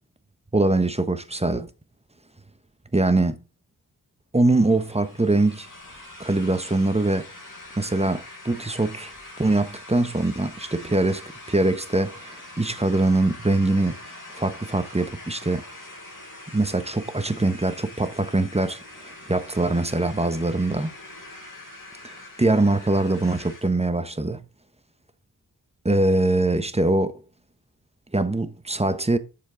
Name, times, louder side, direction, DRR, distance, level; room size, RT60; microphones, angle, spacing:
voice 1, 0.5-1.7 2.9-3.4 4.3-5.7 6.2-7.3 7.8-9.1 9.4-14.0 14.3-15.6 16.5-20.9 22.0-24.4 25.8-27.1 28.1-29.2, right 2 dB, 15° right, 1.1 m, -23 dB
sound 1, 4.4-23.8, left 2 dB, 50° left, 3.6 m, -43 dB
7.3 x 7.2 x 5.1 m
cardioid pair, 50°, 39 cm